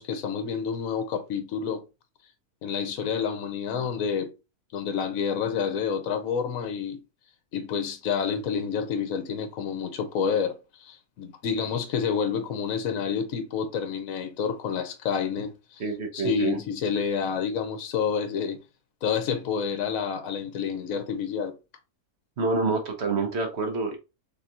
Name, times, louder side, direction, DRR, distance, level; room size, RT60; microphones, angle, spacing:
voice 1, 0.0-1.8 2.6-4.3 4.7-7.0 7.5-15.8 16.1-18.6 19.0-21.6, left 6 dB, 65° left, 1.2 m, -29 dB
voice 2, 15.8-16.6 22.4-24.0, right 3 dB, 50° right, 1.2 m, -27 dB
3.9 x 3.7 x 2.8 m
omnidirectional pair, 1.6 m